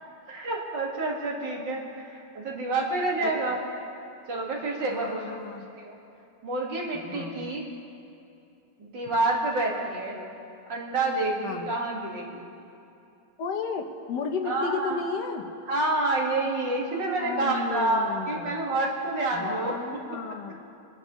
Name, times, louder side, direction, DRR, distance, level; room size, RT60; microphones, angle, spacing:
voice 1, 0.3-3.6 4.3-5.3 5.8-6.0 6.4-7.6 8.8-10.2 10.7-12.4 14.4-15.0 15.7-19.7, right 2 dB, 80° right, -2 dB, 2.6 m, -28 dB
voice 2, 4.9-5.7 6.9-7.5 11.4-11.7 13.4-15.4 17.2-18.6 19.3-20.5, left 5 dB, 70° left, 5 dB, 1.5 m, -33 dB
28.5 x 11.0 x 3.1 m, 2.7 s
omnidirectional pair, 1.9 m